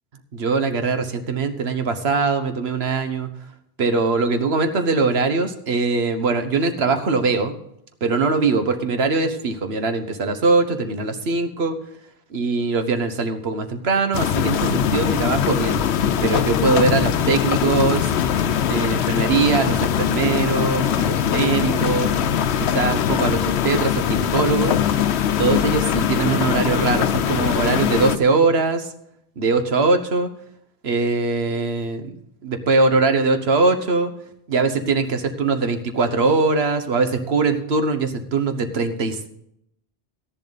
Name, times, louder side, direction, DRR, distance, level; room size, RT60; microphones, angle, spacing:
voice 1, 0.3-3.3 3.8-7.6 8.0-11.8 12.3-15.8 16.2-18.1 18.7-22.1 22.6-24.8 25.4-28.9 29.4-30.3 30.8-32.1 32.4-34.1 34.5-39.3, right 4 dB, 75° right, 8 dB, 1.4 m, -21 dB
sound 1, 14.1-28.2, left 9 dB, 90° left, 0.9 m, -21 dB
13.0 x 11.0 x 4.0 m, 0.74 s
omnidirectional pair, 1.1 m